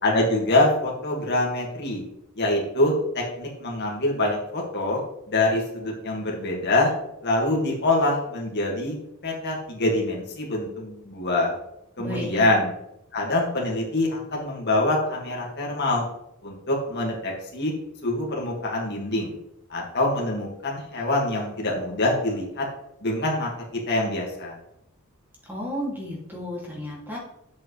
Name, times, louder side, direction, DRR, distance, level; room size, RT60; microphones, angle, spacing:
voice 1, 0.0-2.0 2.4-5.0 5.3-6.9 7.2-8.9 9.2-11.5 12.0-12.7 13.1-16.1 16.4-17.7 18.0-19.3 19.7-22.7 23.0-23.5 23.9-24.6, left 2 dB, 50° left, -2 dB, 2.1 m, -25 dB
voice 2, 12.0-12.4 25.5-27.2, left 1 dB, 10° right, -4 dB, 2.5 m, -32 dB
9.3 x 7.8 x 3.3 m, 0.80 s
head